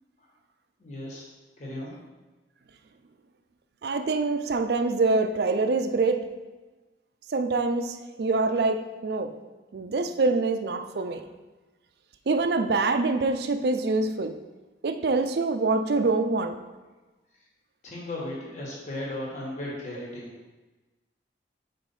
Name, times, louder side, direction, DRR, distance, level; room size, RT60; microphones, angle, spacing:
voice 1, 0.8-1.2 1.6-2.0 17.8-20.3, left 1 dB, 40° left, -4 dB, 1.4 m, -36 dB
voice 2, 3.8-6.3 7.3-9.3 9.7-11.2 12.3-14.3 14.8-16.6, right 3 dB, 60° right, 9 dB, 0.4 m, -25 dB
4.9 x 4.1 x 5.4 m, 1.2 s
head